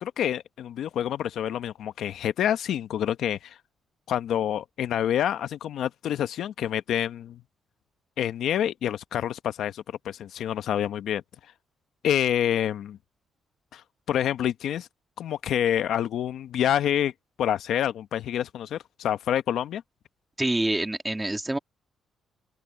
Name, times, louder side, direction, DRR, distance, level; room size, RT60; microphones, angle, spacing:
voice 1, 0.0-3.6 4.1-7.4 8.2-11.2 12.0-13.0 13.7-14.9 15.2-17.1 17.4-19.8, left 10 dB, 75° left, 0.9 m, -27 dB
voice 2, 20.4-21.6, right 1 dB, 10° right, 2.2 m, -26 dB
open air
cardioid pair, 90°, 0 cm